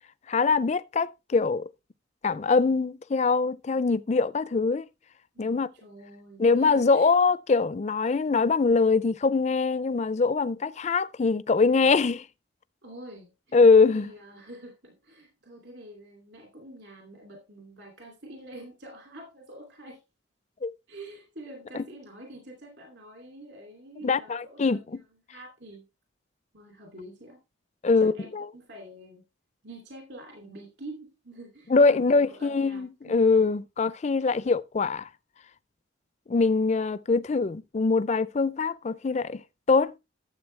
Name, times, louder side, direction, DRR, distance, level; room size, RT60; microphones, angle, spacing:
voice 1, 0.3-1.7 2.2-4.9 5.4-5.7 6.4-12.3 13.5-14.1 20.6-20.7 24.0-24.8 27.8-28.5 31.7-35.1 36.3-39.4 39.7-39.9, left 4 dB, 35° left, 0.4 m, -23 dB
voice 2, 5.3-7.1 12.8-20.0 20.9-25.0 25.3-25.8 26.5-27.4 28.0-29.2 29.6-33.3, right 1 dB, 55° right, 2.7 m, -46 dB
12.0 x 7.6 x 3.2 m
head